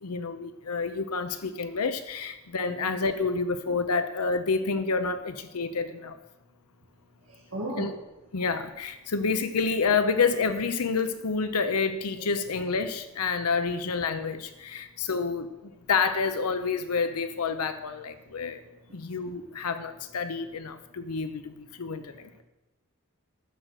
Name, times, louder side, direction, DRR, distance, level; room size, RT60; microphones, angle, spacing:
voice 1, 0.0-6.2 7.8-7.9 8.3-15.5 15.9-18.6 18.9-22.4, left 4 dB, 85° left, 9 dB, 0.7 m, -28 dB
voice 2, 7.3-7.9 10.6-10.9 11.3-11.4 12.2-12.3 13.5-13.6 18.6-19.0 19.3-19.8 20.1-20.5, right 1 dB, 65° right, -4 dB, 1.9 m, -40 dB
14.0 x 6.6 x 6.4 m, 1.0 s
head